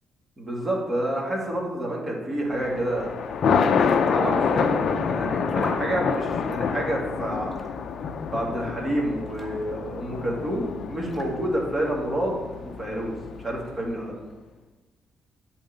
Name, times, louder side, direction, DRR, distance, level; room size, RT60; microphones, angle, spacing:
voice 1, 0.4-3.2 4.0-7.5 8.3-14.1, right 1 dB, 25° right, -2 dB, 2.3 m, -29 dB
Thunder, 2.6-13.9, left 6 dB, 60° left, 0.6 m, -27 dB
sound 1, 3.3-11.8, left 1 dB, 15° left, 1.6 m, -46 dB
7.9 x 4.0 x 6.6 m, 1.2 s
cardioid pair, 90°, 0 cm